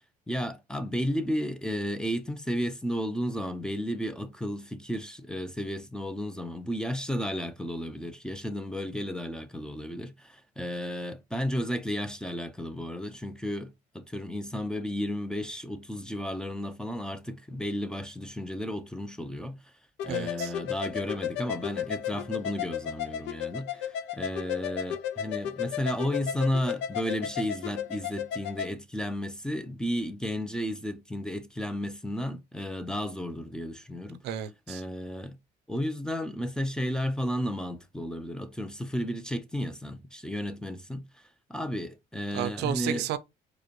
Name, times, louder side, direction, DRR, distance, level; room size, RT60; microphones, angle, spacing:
voice 1, 0.3-19.7 20.0-34.2 34.7-35.4 35.7-43.1, equal, 5° left, 0.5 m, -33 dB
sound 1, 20.0-28.7, left 9 dB, 85° left, 0.6 m, -34 dB
voice 2, 20.1-20.5 34.2-34.8 42.3-43.2, right 11 dB, 85° right, 0.5 m, -32 dB
4.7 x 2.2 x 3.0 m
cardioid pair, 110°, 17 cm